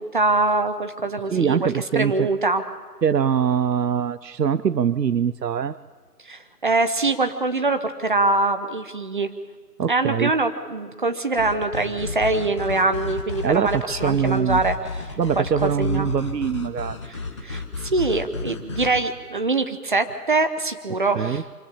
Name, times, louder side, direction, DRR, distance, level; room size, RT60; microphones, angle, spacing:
voice 1, 0.0-2.6 6.2-9.3 9.9-15.1 15.4-16.1 17.0-21.4, right 3 dB, 30° right, 9 dB, 0.9 m, -23 dB
voice 2, 1.3-2.3 3.0-5.8 9.8-10.3 13.4-14.6 15.2-17.0 21.1-21.4, right 7 dB, 85° right, 16 dB, 0.7 m, -23 dB
sound 1, 11.4-19.0, left 3 dB, 20° left, 1.0 m, -32 dB
25.0 x 15.5 x 8.7 m, 1.5 s
figure-of-eight pair, 155°, 48 cm